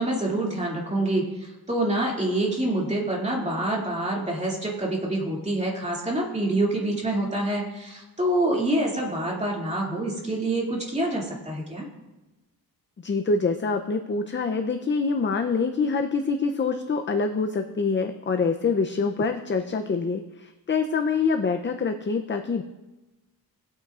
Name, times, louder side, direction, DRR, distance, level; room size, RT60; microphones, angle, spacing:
voice 1, 0.0-11.9, right 1 dB, 20° right, -3 dB, 2.4 m, -26 dB
voice 2, 13.0-22.6, left 4 dB, 30° left, 6 dB, 0.6 m, -25 dB
19.5 x 8.9 x 2.5 m, 1.1 s
wide cardioid pair, 120°, 37 cm